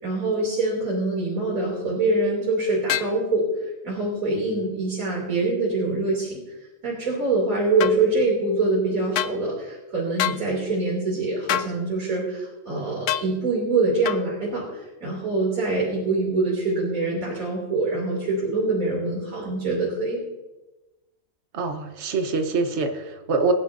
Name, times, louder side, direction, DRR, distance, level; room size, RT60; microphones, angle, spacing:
voice 1, 0.0-3.5 3.8-6.4 6.8-20.2, right 2 dB, 75° right, -4 dB, 3.5 m, -24 dB
sound 1, 2.9-3.2 7.8-8.0 9.1-9.4 10.2-10.4 11.5-11.7 13.1-13.3 14.0-14.2, left 11 dB, 65° left, 0.9 m, -25 dB
voice 2, 21.5-23.5, right 3 dB, 55° right, 5 dB, 1.4 m, -25 dB
24.0 x 11.0 x 2.7 m, 1.1 s
omnidirectional pair, 1.4 m